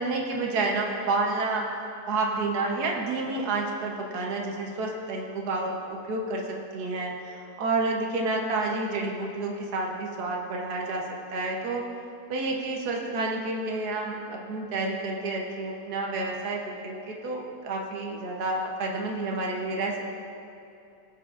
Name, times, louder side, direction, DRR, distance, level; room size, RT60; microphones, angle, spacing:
voice 1, 0.0-1.7 2.1-11.0 11.3-11.9 12.3-20.0, right 3 dB, 75° right, 0 dB, 1.5 m, -29 dB
19.0 x 6.7 x 2.5 m, 2.7 s
omnidirectional pair, 1.7 m